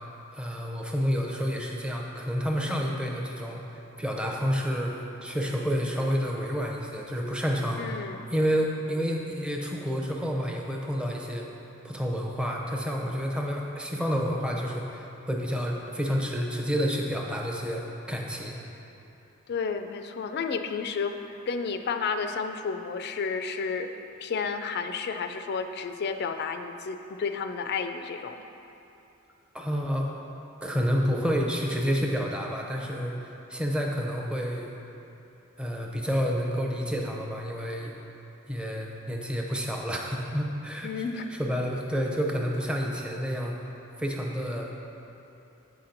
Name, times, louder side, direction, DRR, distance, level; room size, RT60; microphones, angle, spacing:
voice 1, 0.3-3.6 4.0-8.0 8.3-11.5 11.8-18.6 29.5-30.1 30.6-34.7 35.6-37.9 38.5-43.6 44.0-44.7, equal, 5° right, 0 dB, 0.6 m, -29 dB
voice 2, 7.8-8.3 19.5-23.9 24.2-28.4 40.8-41.3, left 5 dB, 50° left, 7 dB, 0.3 m, -31 dB
8.0 x 5.8 x 3.9 m, 2.9 s
head